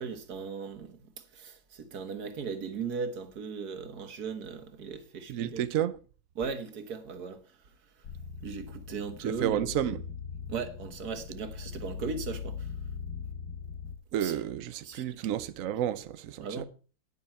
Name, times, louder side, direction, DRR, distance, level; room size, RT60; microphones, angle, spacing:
voice 1, 0.0-5.6 6.4-7.4 8.4-9.6 10.5-12.7 14.2-14.3 14.8-15.0 16.4-16.6, right 5 dB, 50° right, 1.8 m, -37 dB
voice 2, 5.3-5.9 9.2-10.0 14.1-16.6, right 10 dB, 80° right, 0.7 m, -31 dB
sound 1, 8.0-14.0, left 6 dB, 55° left, 1.5 m, -40 dB
9.8 x 9.6 x 4.4 m
omnidirectional pair, 2.3 m